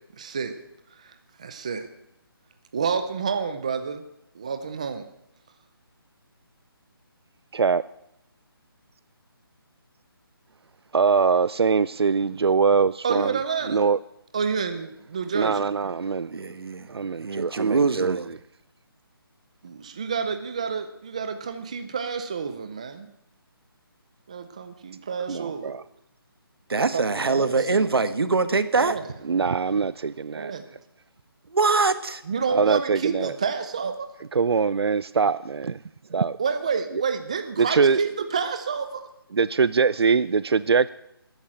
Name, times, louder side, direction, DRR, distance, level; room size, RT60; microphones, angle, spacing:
voice 1, 0.2-0.6 0.9-1.9 2.7-4.0 4.3-5.1 13.0-13.8 14.3-15.6 19.6-23.1 24.3-25.8 26.9-27.4 28.7-29.1 30.3-30.7 32.3-34.1 36.4-39.1, right 5 dB, 15° right, 9 dB, 0.5 m, -29 dB
voice 2, 10.9-13.4 13.7-14.0 15.3-16.3 16.9-18.2 25.3-25.8 29.3-30.5 32.5-33.3 34.3-35.8 36.1-36.4 37.6-38.0 39.3-40.9, right 5 dB, 90° right, 17 dB, 0.5 m, -22 dB
voice 3, 16.3-18.3 26.7-29.0 31.5-32.2, right 4 dB, 75° right, 12 dB, 1.5 m, -23 dB
13.0 x 10.5 x 9.0 m, 0.82 s
hypercardioid pair, 175°, 13 cm